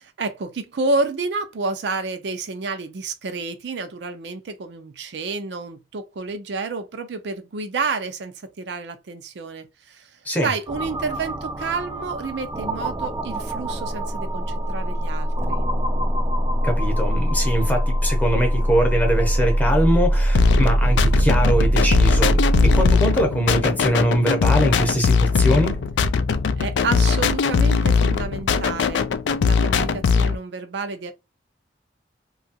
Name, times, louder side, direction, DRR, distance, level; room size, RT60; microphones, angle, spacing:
voice 1, 0.2-15.6 26.6-29.0 29.4-31.1, right 3 dB, 75° right, 0.5 m, -29 dB
sound 1, 10.7-22.9, equal, 20° right, 0.3 m, -22 dB
voice 2, 16.6-25.8, equal, 10° left, 0.7 m, -22 dB
sound 2, 17.8-27.9, left 1 dB, 60° left, 0.7 m, -44 dB
sound 3, 20.3-30.4, left 5 dB, 85° left, 0.3 m, -20 dB
2.8 x 2.3 x 2.7 m
head